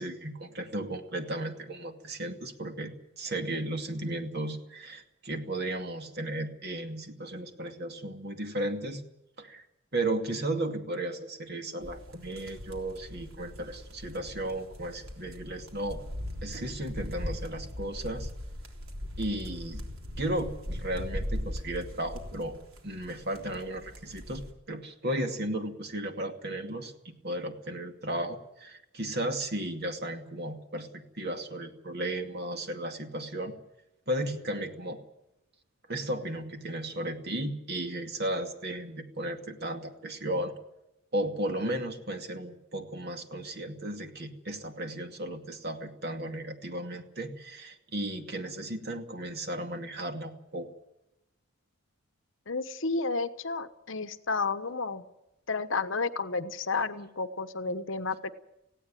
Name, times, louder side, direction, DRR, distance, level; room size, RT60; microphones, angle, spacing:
voice 1, 0.0-9.0 9.4-9.6 9.9-16.0 16.4-18.3 19.2-19.8 20.2-22.5 22.8-33.5 34.1-35.0 35.9-40.5 41.1-50.7, right 1 dB, 50° right, 5 dB, 2.4 m, -35 dB
sound 1, 11.8-24.5, left 1 dB, 80° right, 3.6 m, -40 dB
voice 2, 52.5-55.0 55.5-58.3, left 4 dB, 60° left, 11 dB, 1.1 m, -31 dB
19.0 x 16.5 x 9.3 m, 0.88 s
head